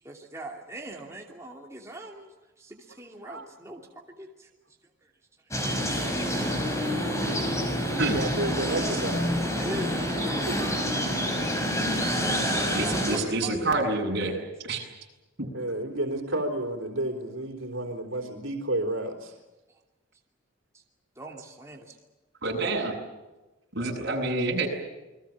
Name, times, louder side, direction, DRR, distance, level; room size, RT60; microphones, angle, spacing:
voice 1, 0.0-4.8 5.0-5.1 9.6-12.1 12.7-14.4 19.7-19.8 20.7-20.8 21.2-22.0, right 1 dB, 15° right, 0 dB, 2.7 m, -42 dB
sound 1, 5.5-13.2, equal, 15° left, 5.4 m, -27 dB
voice 2, 7.9-9.5 10.2-10.7 15.5-19.3, right 1 dB, 85° right, 4 dB, 3.8 m, -31 dB
voice 3, 12.7-14.4 14.6-14.9 22.4-23.0 23.7-24.7, right 2 dB, 55° right, 0 dB, 7.7 m, -27 dB
29.0 x 22.5 x 7.4 m, 1.1 s
head